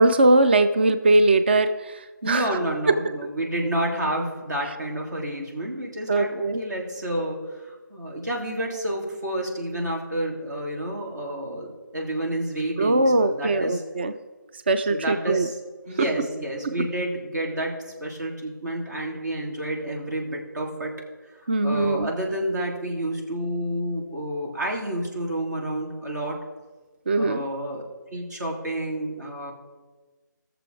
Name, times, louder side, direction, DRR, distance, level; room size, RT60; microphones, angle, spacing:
voice 1, 0.0-2.6 2.9-3.0 6.1-6.6 12.8-14.1 14.7-15.5 16.0-16.1 16.6-16.7 21.5-22.1 27.1-27.4, right 2 dB, 30° right, 10 dB, 0.4 m, -20 dB
voice 2, 2.2-11.7 11.9-13.8 14.9-15.6 15.9-20.9 21.6-26.4 27.1-27.8 28.1-29.5, right 1 dB, 60° right, -2 dB, 3.1 m, -29 dB
16.5 x 7.0 x 4.7 m, 1.3 s
figure-of-eight pair, 165°, 11 cm